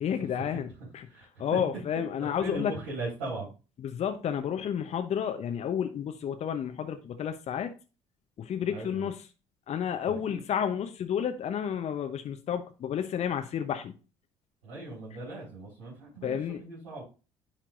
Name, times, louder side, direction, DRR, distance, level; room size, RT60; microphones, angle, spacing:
voice 1, 0.0-1.1 1.4-2.7 3.8-7.7 8.4-9.3 9.7-13.9 16.2-16.6, left 8 dB, 45° left, 7 dB, 0.8 m, -31 dB
voice 2, 1.1-1.6 2.2-3.5 8.6-9.1 10.0-10.4 14.6-17.0, right 2 dB, 80° right, -9 dB, 4.3 m, -39 dB
10.0 x 4.5 x 2.5 m, 0.31 s
figure-of-eight pair, 55°, 16 cm